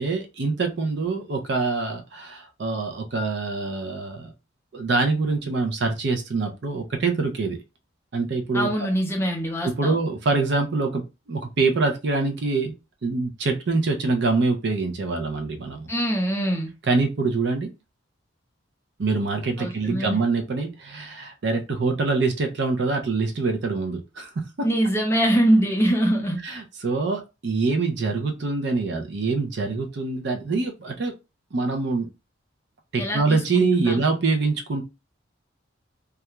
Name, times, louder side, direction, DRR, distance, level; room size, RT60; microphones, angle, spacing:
voice 1, 0.0-4.3 4.7-7.6 8.1-8.7 9.6-12.7 13.0-15.9 16.9-17.7 19.0-24.3 24.6-24.7 26.4-31.1 31.5-32.1 32.9-34.8, right 3 dB, 55° right, 4 dB, 0.5 m, -25 dB
voice 2, 8.5-10.0 15.9-16.7 19.6-20.2 24.6-26.4 33.0-34.0, right 1 dB, 10° left, 1 dB, 0.5 m, -23 dB
2.3 x 2.2 x 2.9 m, 0.27 s
head